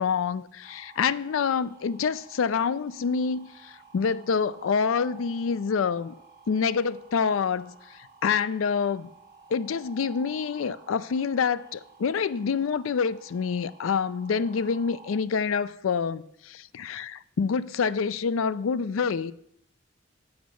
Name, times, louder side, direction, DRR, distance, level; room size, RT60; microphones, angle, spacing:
voice 1, 0.0-6.1 6.5-9.1 9.5-19.3, left 6 dB, 90° left, 0.4 m, -27 dB
sound 1, 0.6-15.2, right 3 dB, 60° left, 3.9 m, -52 dB
9.4 x 7.2 x 6.2 m
head